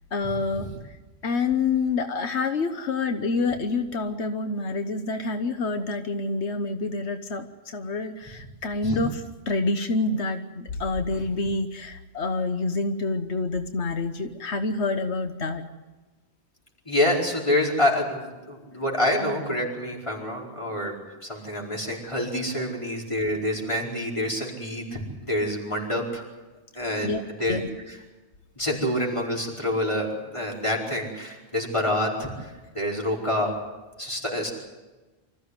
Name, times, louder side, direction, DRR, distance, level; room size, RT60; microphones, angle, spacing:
voice 1, 0.1-1.0 1.2-15.6 22.6-22.7 27.0-27.2 27.5-27.7, left 3 dB, 90° left, 7 dB, 1.4 m, -27 dB
voice 2, 16.9-20.9 21.2-26.2 26.7-27.1 27.4-27.6 28.6-33.5 34.0-34.5, left 1 dB, 30° left, -2 dB, 5.0 m, -27 dB
25.0 x 15.0 x 9.7 m, 1.2 s
omnidirectional pair, 1.1 m